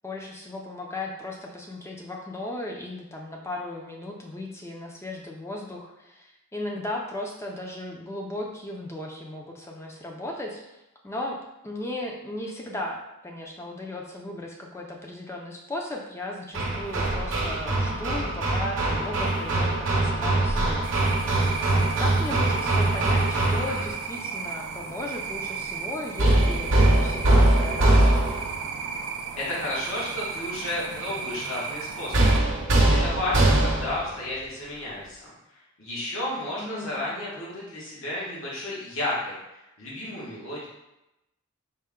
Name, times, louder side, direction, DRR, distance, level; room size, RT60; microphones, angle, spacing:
voice 1, 0.0-21.2 21.7-28.4 36.6-37.1, left 1 dB, 15° left, 0 dB, 0.4 m, -36 dB
Hammer, 16.5-24.0 26.2-28.6 32.1-34.1, right 1 dB, 60° right, 0.8 m, -22 dB
sound 1, 20.8-32.4, right 5 dB, 80° right, 0.4 m, -35 dB
voice 2, 29.3-32.4 32.7-35.3 35.8-39.3 39.8-40.7, left 1 dB, 75° left, -7 dB, 1.2 m, -32 dB
4.3 x 2.2 x 3.6 m, 0.91 s
head